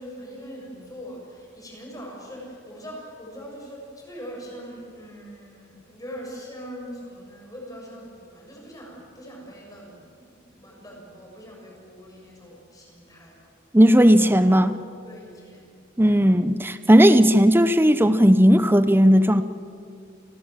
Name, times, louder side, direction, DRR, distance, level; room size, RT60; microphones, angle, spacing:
voice 1, 0.0-13.4 15.0-15.7, equal, 20° left, -2 dB, 7.1 m, -41 dB
voice 2, 13.7-14.8 16.0-19.4, equal, 10° right, 11 dB, 0.8 m, -16 dB
30.0 x 21.5 x 7.6 m, 2.4 s
head